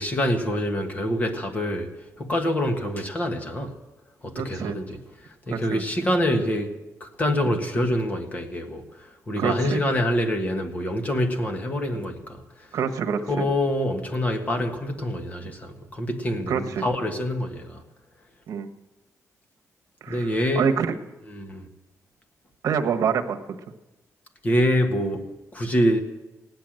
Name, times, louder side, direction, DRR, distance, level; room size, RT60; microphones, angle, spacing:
voice 1, 0.0-1.9 2.2-3.7 4.2-6.7 7.0-12.4 13.3-17.8 20.1-20.7 21.3-21.7 24.4-25.3 25.5-26.0, equal, 25° left, 4 dB, 1.5 m, -26 dB
voice 2, 4.4-4.7 5.5-5.8 7.5-7.6 9.4-9.8 12.7-13.4 16.5-16.8 18.5-18.7 20.0-20.9 22.6-23.4, right 6 dB, 70° right, 6 dB, 1.2 m, -26 dB
16.0 x 10.5 x 7.7 m, 1.0 s
wide cardioid pair, 175°, 6 cm